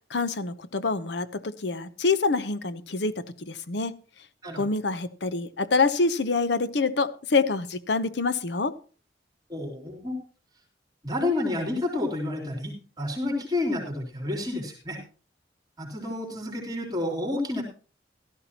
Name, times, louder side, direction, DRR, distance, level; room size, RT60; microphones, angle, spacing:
voice 1, 0.1-4.0 4.6-8.7, left 4 dB, 65° left, 13 dB, 0.8 m, -26 dB
voice 2, 9.5-10.2 11.0-15.0 15.8-17.6, left 2 dB, 20° right, 0 dB, 3.5 m, -30 dB
16.0 x 13.0 x 2.9 m, 0.38 s
head